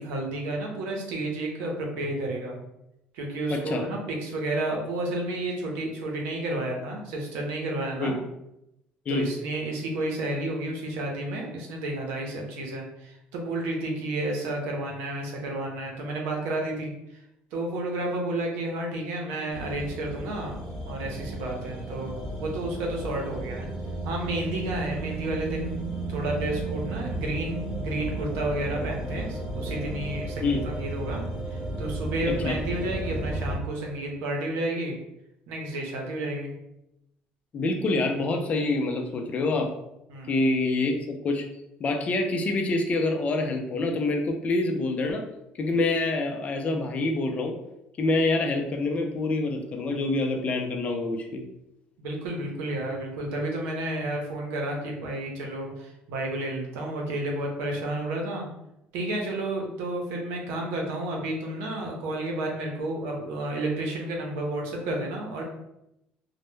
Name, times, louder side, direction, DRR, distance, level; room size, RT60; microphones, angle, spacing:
voice 1, 0.0-2.6 3.1-8.2 9.1-17.2 17.5-20.6 20.9-23.7 24.0-31.2 31.5-35.0 35.5-36.5 40.1-40.4 52.0-58.5 58.9-65.4, right 1 dB, 85° right, 0 dB, 0.7 m, -31 dB
voice 2, 3.5-3.8 8.0-8.2 9.1-9.3 30.4-30.6 32.3-32.6 37.5-39.7 40.3-41.4 41.8-45.2 45.6-47.5 48.0-51.4, left 2 dB, 40° left, 3 dB, 0.4 m, -26 dB
sound 1, 19.5-33.6, right 2 dB, 10° left, 1.0 m, -33 dB
2.1 x 2.0 x 3.1 m, 0.85 s
cardioid pair, 115°, 4 cm